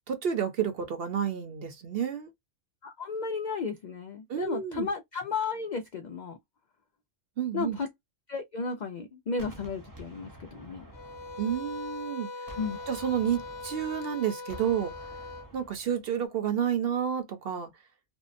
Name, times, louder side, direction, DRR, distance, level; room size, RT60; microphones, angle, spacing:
voice 1, 0.1-2.3 4.3-4.9 7.4-7.8 11.4-12.3 12.9-14.9 15.5-17.7, right 8 dB, 55° right, 0.8 m, -30 dB
voice 2, 2.8-6.4 7.5-7.9 8.3-10.8 12.6-12.8, left 5 dB, 80° left, 0.4 m, -34 dB
Gunshot gunfire, 9.4-12.1 12.5-16.0, right 1 dB, 25° right, 0.4 m, -50 dB
sound 1, 10.9-15.5, left 3 dB, 65° left, 0.8 m, -41 dB
2.6 x 2.0 x 2.5 m
omnidirectional pair, 1.3 m